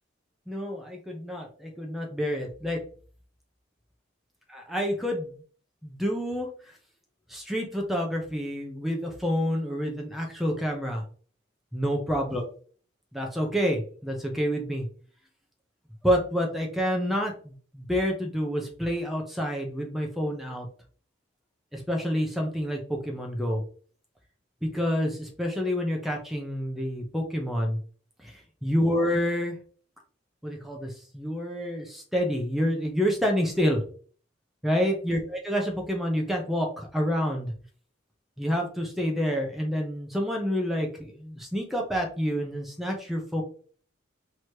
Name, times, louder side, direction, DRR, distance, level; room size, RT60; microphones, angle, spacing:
voice 1, 0.5-2.8 4.5-5.4 5.8-6.5 7.3-11.0 11.7-12.4 13.1-14.9 16.0-20.7 21.7-23.6 24.6-27.8 28.2-29.6 30.4-33.8 34.6-37.5 38.4-43.4, equal, ahead, 0 dB, 0.8 m, -28 dB
3.2 x 3.1 x 4.5 m, 0.42 s
head